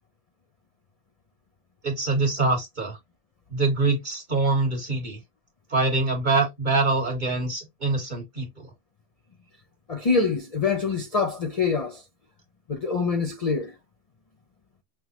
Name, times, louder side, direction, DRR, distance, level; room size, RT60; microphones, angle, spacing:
voice 1, 1.8-3.0 3.5-5.2 5.7-8.7, right 3 dB, 40° right, 1.8 m, -24 dB
voice 2, 9.9-12.0 12.7-13.7, left 4 dB, 40° left, 0.5 m, -25 dB
5.8 x 2.1 x 3.0 m
omnidirectional pair, 1.3 m